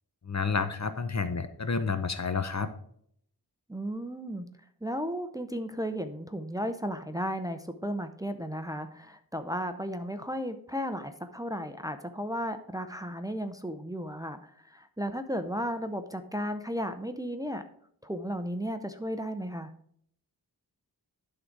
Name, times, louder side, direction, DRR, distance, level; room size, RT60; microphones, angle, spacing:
voice 1, 0.2-2.7, left 5 dB, 45° left, 10 dB, 0.8 m, -30 dB
voice 2, 3.7-4.5 4.8-17.6 18.0-19.7, equal, 10° right, 8 dB, 0.6 m, -34 dB
11.5 x 3.9 x 4.6 m, 0.65 s
wide cardioid pair, 65°, 40 cm